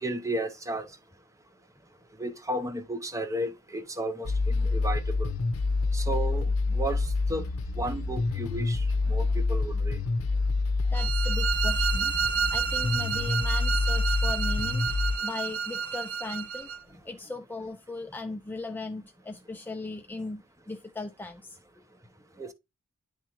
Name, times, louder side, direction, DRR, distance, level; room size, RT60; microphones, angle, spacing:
voice 1, 0.0-0.9 2.2-5.3 5.9-7.5 7.8-10.0 22.4-22.5, right 1 dB, 15° right, 0.7 m, -33 dB
sound 1, 4.2-15.1, left 3 dB, 70° left, 0.7 m, -27 dB
voice 2, 10.8-14.9 15.2-21.6 22.4-22.5, left 2 dB, 10° left, 0.3 m, -38 dB
sound 2, 10.9-16.8, right 6 dB, 65° right, 2.2 m, -30 dB
10.5 x 3.5 x 2.9 m
head